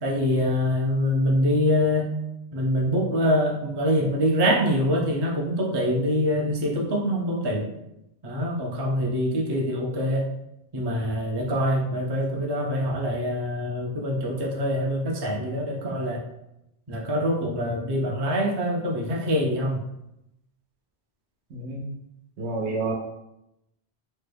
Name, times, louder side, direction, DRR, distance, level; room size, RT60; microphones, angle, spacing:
voice 1, 0.0-2.1 2.5-7.7 8.2-10.2 10.7-16.2 16.9-19.8, equal, 35° right, -1 dB, 0.4 m, -24 dB
voice 2, 21.5-21.8 22.4-22.9, right 2 dB, 90° right, 0 dB, 1.0 m, -30 dB
3.1 x 2.2 x 3.4 m, 0.86 s
omnidirectional pair, 1.1 m